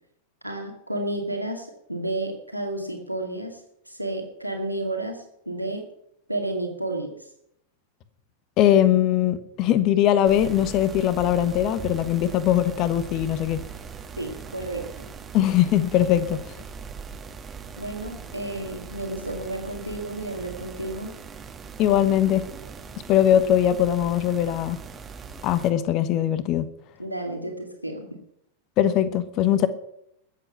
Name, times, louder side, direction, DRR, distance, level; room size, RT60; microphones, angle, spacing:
voice 1, 0.4-3.6 3.9-5.8 6.3-7.1 14.2-15.1 17.8-21.2 27.0-28.1, right 2 dB, 90° right, 2 dB, 2.3 m, -31 dB
voice 2, 8.6-13.6 15.3-16.4 21.8-22.5 23.1-24.8 25.4-26.7 28.8-29.7, left 11 dB, 40° left, 14 dB, 1.2 m, -21 dB
sound 1, 10.2-25.7, right 6 dB, 20° right, 1.5 m, -40 dB
21.0 x 8.3 x 5.8 m, 0.75 s
figure-of-eight pair, 90°, 0 cm